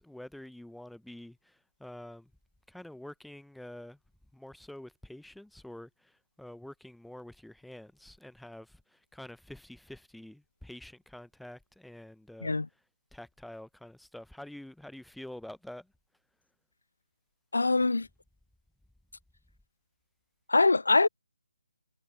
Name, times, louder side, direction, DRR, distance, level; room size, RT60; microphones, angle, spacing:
voice 1, 0.0-2.3 2.7-4.0 4.3-12.6 13.1-15.9, left 1 dB, ahead, 0.6 m, -47 dB
voice 2, 17.5-18.1 20.5-21.1, left 3 dB, 70° left, 0.9 m, -23 dB
figure-of-eight pair, 145°, 0 cm